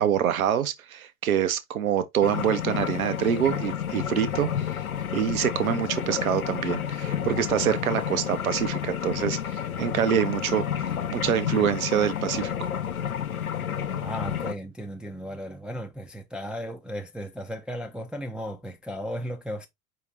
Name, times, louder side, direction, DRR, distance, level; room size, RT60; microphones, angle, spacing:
voice 1, 0.0-4.5 5.1-12.7, right 9 dB, 80° right, 0.7 m, -26 dB
sound 1, 2.2-14.5, left 9 dB, 90° left, 0.6 m, -30 dB
voice 2, 14.0-19.7, equal, ahead, 0.4 m, -35 dB
4.9 x 2.9 x 3.2 m
figure-of-eight pair, 80°, 42 cm